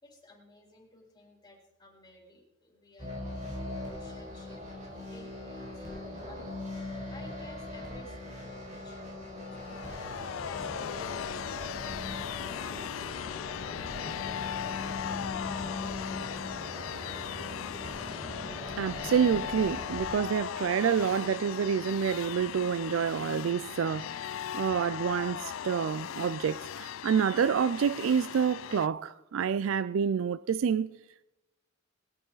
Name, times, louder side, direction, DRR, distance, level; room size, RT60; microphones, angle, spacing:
voice 1, 0.0-6.5 7.1-12.1 12.5-14.4, left 1 dB, 20° left, 4.1 m, -55 dB
sound 1, 3.0-20.2, left 1 dB, 40° right, 4.2 m, -40 dB
sound 2, 9.4-28.9, left 9 dB, 75° left, 0.4 m, -38 dB
voice 2, 18.8-24.3 24.5-30.9, right 7 dB, 75° right, 0.4 m, -28 dB
21.0 x 11.0 x 4.0 m
head